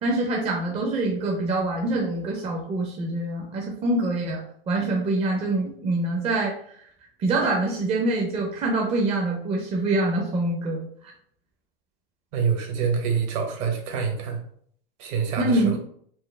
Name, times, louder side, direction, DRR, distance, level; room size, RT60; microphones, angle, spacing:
voice 1, 0.0-4.4 4.7-6.8 7.2-11.1 15.4-15.8, right 2 dB, 20° right, -1 dB, 0.6 m, -25 dB
voice 2, 12.3-14.4 15.0-15.7, right 6 dB, 45° right, 3 dB, 1.0 m, -26 dB
4.4 x 2.0 x 3.2 m, 0.63 s
hypercardioid pair, 130°, 29 cm